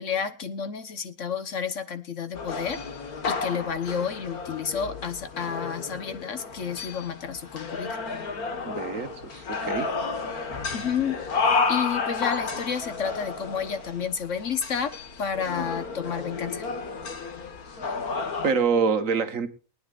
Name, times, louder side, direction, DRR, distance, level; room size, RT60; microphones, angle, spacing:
voice 1, 0.0-2.8 3.2-8.0 10.7-11.2 11.7-16.6, left 7 dB, 60° left, 11 dB, 1.4 m, -30 dB
sound 1, 2.3-18.5, left 4 dB, 90° left, 2.1 m, -32 dB
voice 2, 8.7-9.9 18.4-19.5, right 5 dB, 65° right, 9 dB, 1.6 m, -26 dB
23.0 x 9.5 x 2.5 m, 0.35 s
omnidirectional pair, 1.5 m